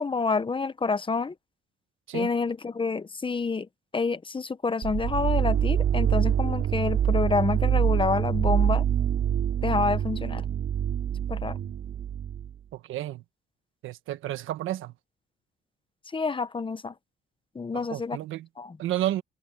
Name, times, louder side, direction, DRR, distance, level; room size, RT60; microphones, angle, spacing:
voice 1, 0.0-1.3 2.1-3.7 3.9-8.8 9.6-10.4 11.3-11.6 16.1-16.9 17.5-18.2 18.6-18.8, left 4 dB, 25° left, 1.1 m, -28 dB
sound 1, 4.8-12.5, right 9 dB, 65° right, 3.8 m, -25 dB
voice 2, 12.7-13.2 13.8-14.9 17.7-18.5 18.8-19.2, right 13 dB, 85° right, 1.3 m, -31 dB
cardioid pair, 90°, 20 cm